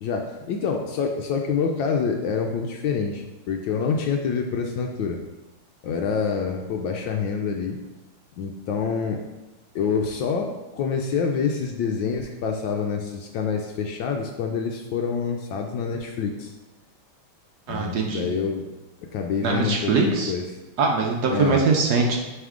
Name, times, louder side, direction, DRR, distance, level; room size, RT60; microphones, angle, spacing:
voice 1, 0.0-5.2 5.8-7.8 8.4-9.2 9.7-16.5 17.7-18.7 19.1-20.4 21.3-21.6, left 5 dB, 75° left, 2 dB, 1.2 m, -26 dB
voice 2, 17.7-18.3 19.4-20.3 20.8-22.2, right 4 dB, 65° right, 0 dB, 1.1 m, -22 dB
9.1 x 3.6 x 3.7 m, 1.1 s
omnidirectional pair, 2.3 m